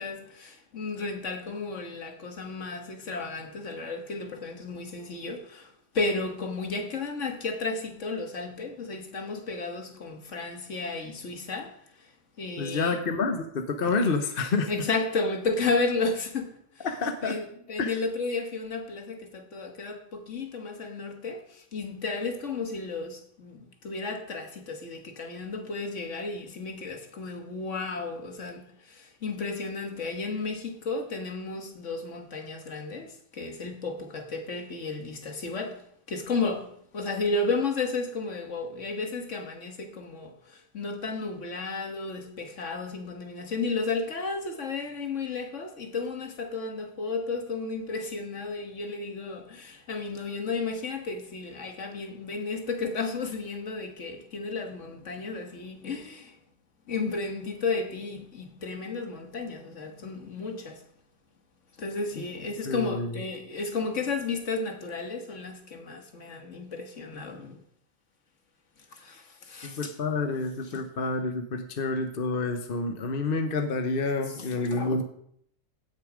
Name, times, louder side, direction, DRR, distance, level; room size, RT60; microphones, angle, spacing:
voice 1, 0.0-12.1 12.4-13.0 14.7-16.9 17.2-56.4 56.9-60.8 61.8-67.6 68.9-69.9 70.7-70.8 74.3-75.0, left 3 dB, 60° left, 1.7 m, -33 dB
voice 2, 12.6-14.7 16.8-17.4 17.8-17.9 62.7-63.1 69.6-75.0, left 3 dB, 45° left, 1.0 m, -28 dB
16.0 x 6.7 x 5.0 m
omnidirectional pair, 1.4 m